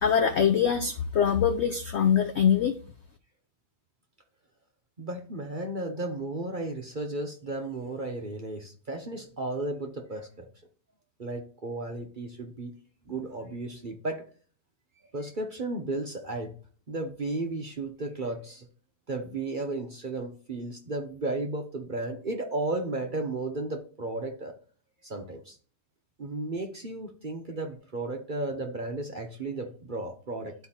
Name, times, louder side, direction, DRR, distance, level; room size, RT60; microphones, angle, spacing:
voice 1, 0.0-2.8, left 8 dB, 80° left, 6 dB, 0.6 m, -23 dB
voice 2, 5.0-10.5 11.2-12.7 13.1-14.2 15.1-16.5 16.9-18.6 19.1-24.5 25.0-25.6 26.2-30.5, right 2 dB, 40° right, 3 dB, 0.7 m, -34 dB
11.5 x 4.6 x 2.9 m, 0.42 s
omnidirectional pair, 1.9 m